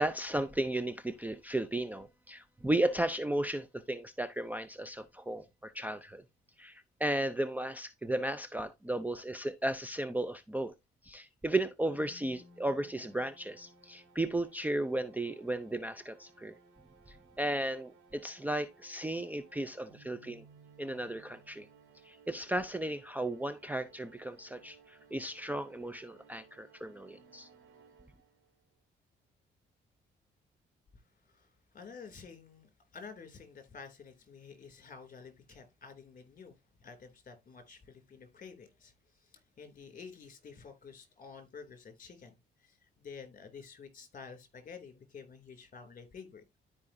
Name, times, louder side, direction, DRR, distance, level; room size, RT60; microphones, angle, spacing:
voice 1, 0.0-6.2 6.6-10.7 11.0-16.6 17.1-20.4 20.8-21.7 22.0-27.5, right 1 dB, 10° right, 0.6 m, -35 dB
sound 1, 11.9-28.6, right 4 dB, 90° right, 2.7 m, -61 dB
voice 2, 30.9-46.4, left 5 dB, 40° left, 2.7 m, -51 dB
13.0 x 4.9 x 2.6 m
cardioid pair, 90°, 20 cm